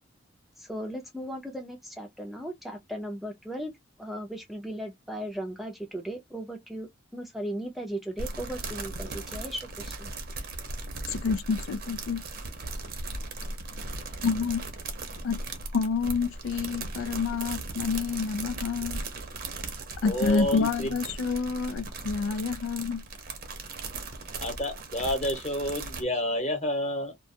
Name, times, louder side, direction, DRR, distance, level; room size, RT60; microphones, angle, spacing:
voice 1, 0.6-3.7 4.0-10.1, right 1 dB, ahead, 0.5 m, -37 dB
sound 1, 8.2-26.0, right 3 dB, 45° right, 0.6 m, -38 dB
voice 2, 11.1-12.2 14.2-14.6 15.2-15.4 15.7-19.0 20.0-23.0, left 5 dB, 85° left, 0.3 m, -28 dB
voice 3, 20.0-21.0 21.3-21.4 24.4-27.1, left 1 dB, 35° left, 1.0 m, -29 dB
2.4 x 2.2 x 2.7 m
head